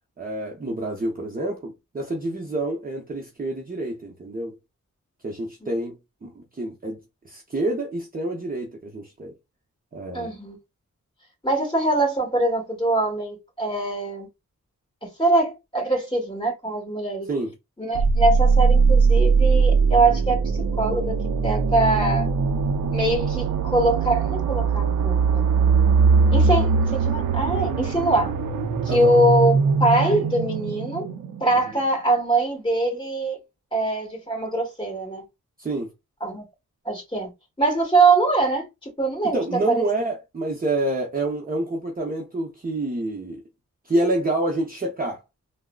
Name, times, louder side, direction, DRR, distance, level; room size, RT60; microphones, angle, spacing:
voice 1, 0.2-4.6 5.2-9.3 9.9-10.3 17.3-17.5 28.9-29.2 35.6-35.9 39.2-43.4 43.9-45.2, right 2 dB, 25° right, 0.7 m, -28 dB
voice 2, 10.1-10.6 11.4-14.3 15.0-17.3 17.8-20.4 20.8-22.3 22.9-25.4 26.3-28.3 28.8-31.1 31.4-33.4 33.7-35.2 36.2-36.4 36.9-37.3 37.6-39.8, right 2 dB, 15° left, 1.9 m, -23 dB
sound 1, 18.0-31.7, right 5 dB, 85° right, 0.6 m, -21 dB
3.6 x 2.1 x 2.3 m
wide cardioid pair, 100°, 32 cm